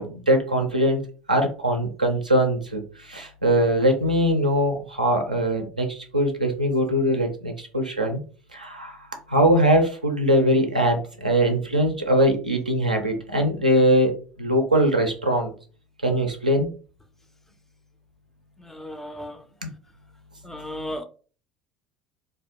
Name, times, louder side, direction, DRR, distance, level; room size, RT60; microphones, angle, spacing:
voice 1, 0.0-8.2 8.5-8.9 9.3-14.1 14.4-15.5 16.0-16.7 19.6-19.7, equal, 85° right, 0.4 m, -22 dB
voice 2, 18.7-19.3 20.5-21.0, equal, 5° left, 0.3 m, -34 dB
2.2 x 2.1 x 2.7 m
figure-of-eight pair, 70°, 4 cm